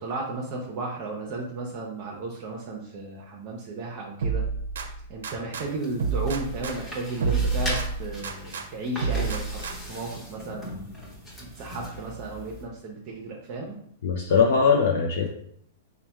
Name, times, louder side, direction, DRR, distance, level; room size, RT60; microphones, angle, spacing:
voice 1, 0.0-4.4 5.1-11.0 11.4-13.8, right 2 dB, 40° right, -1 dB, 0.6 m, -34 dB
sound 1, 4.2-5.7 6.0-8.7 9.0-10.0, right 4 dB, 85° right, 0.4 m, -29 dB
sound 2, 5.6-12.6, equal, 10° left, 0.9 m, -39 dB
voice 2, 14.0-15.3, left 5 dB, 70° left, 1 dB, 0.4 m, -21 dB
3.3 x 2.1 x 4.3 m, 0.68 s
hypercardioid pair, 150°, 0 cm